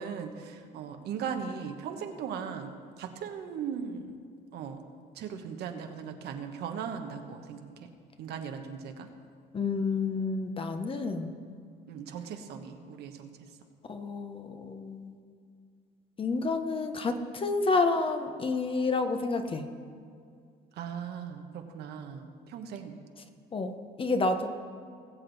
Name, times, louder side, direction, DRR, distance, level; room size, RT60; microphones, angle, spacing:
voice 1, 0.0-4.2 4.5-4.8 5.1-7.9 8.2-9.1 11.9-13.4 20.8-23.0, right 7 dB, 75° right, 5 dB, 1.2 m, -38 dB
voice 2, 9.5-11.4 13.9-15.2 16.2-19.7 23.5-24.5, left 3 dB, 30° left, 7 dB, 1.0 m, -29 dB
20.0 x 7.6 x 4.1 m, 2.3 s
cardioid pair, 110°, 17 cm